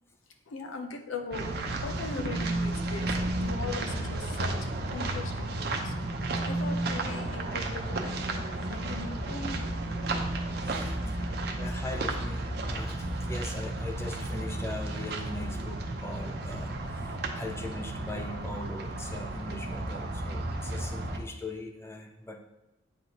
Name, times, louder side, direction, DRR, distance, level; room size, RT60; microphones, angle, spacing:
voice 1, 0.5-1.5 1.8-4.6 4.9-5.9 6.5-8.2 8.7-9.6 11.3-11.4, left 3 dB, 85° left, 5 dB, 0.7 m, -39 dB
Anillo verde ciclista Casa de Campo, 1.3-21.2, right 2 dB, 50° right, 0.6 m, -33 dB
sound 1, 3.4-4.4 5.4-6.4 7.4-8.4 9.4-10.4, left 1 dB, 70° left, 1.1 m, -49 dB
voice 2, 10.6-10.9 11.6-22.4, left 1 dB, 15° left, 3 dB, 0.5 m, -40 dB
8.4 x 4.0 x 3.0 m, 0.99 s
head